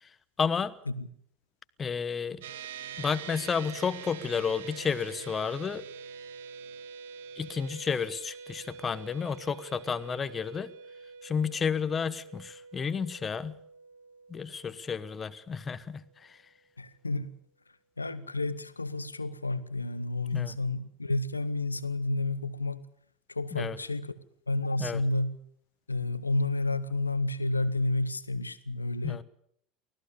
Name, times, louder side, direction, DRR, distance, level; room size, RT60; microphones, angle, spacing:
voice 1, 0.4-0.8 1.8-2.4 3.0-5.8 7.4-10.7 11.2-13.6 14.3-16.4 20.3-20.6 23.5-23.8 24.8-25.0 29.0-29.2, left 6 dB, 25° left, 1.1 m, -31 dB
sound 1, 2.4-16.0, right 6 dB, 65° right, 1.3 m, -46 dB
voice 2, 16.8-17.3 18.0-22.8 23.3-25.4 25.9-29.2, left 2 dB, 85° left, 0.9 m, -31 dB
24.5 x 17.0 x 7.1 m
figure-of-eight pair, 70°, 0 cm